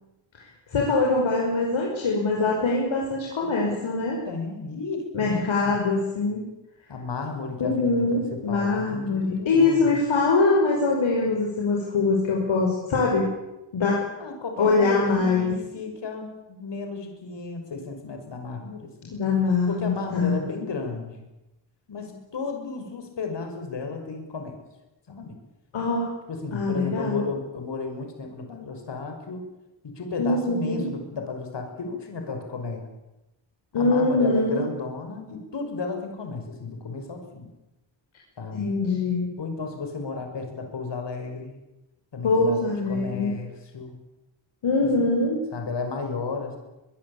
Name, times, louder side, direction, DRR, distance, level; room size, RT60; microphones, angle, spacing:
voice 1, 0.7-4.2 5.1-6.4 7.6-13.3 13.7-14.0 14.6-15.5 19.1-20.4 25.7-26.1 26.5-27.2 30.2-30.9 33.7-34.6 38.5-39.3 42.2-43.3 44.6-45.4, left 3 dB, 85° left, -2 dB, 5.8 m, -23 dB
voice 2, 4.3-5.8 6.9-10.0 14.2-19.2 19.7-21.3 21.9-24.5 25.1-25.4 26.3-29.5 29.8-32.8 33.7-37.5 38.4-38.7 39.4-41.6 42.1-43.9 44.8-45.1 45.5-46.6, left 4 dB, 65° left, 5 dB, 6.1 m, -33 dB
23.5 x 21.0 x 8.9 m, 0.99 s
wide cardioid pair, 155°, 46 cm